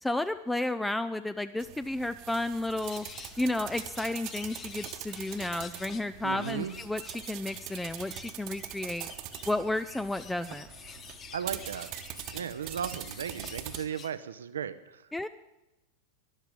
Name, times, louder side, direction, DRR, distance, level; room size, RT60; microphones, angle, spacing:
voice 1, 0.0-3.1 3.4-9.1 9.5-10.7 15.1-15.3, left 2 dB, 5° left, 12 dB, 0.5 m, -32 dB
sound 1, 1.6-13.8, right 12 dB, 40° right, 1.2 m, -43 dB
sound 2, 2.8-14.1, left 7 dB, 25° left, 1.1 m, -49 dB
voice 2, 6.2-6.8 11.3-11.9 12.3-15.1, right 8 dB, 65° right, 13 dB, 0.7 m, -36 dB
13.5 x 11.5 x 9.1 m, 0.99 s
figure-of-eight pair, 90°, 0 cm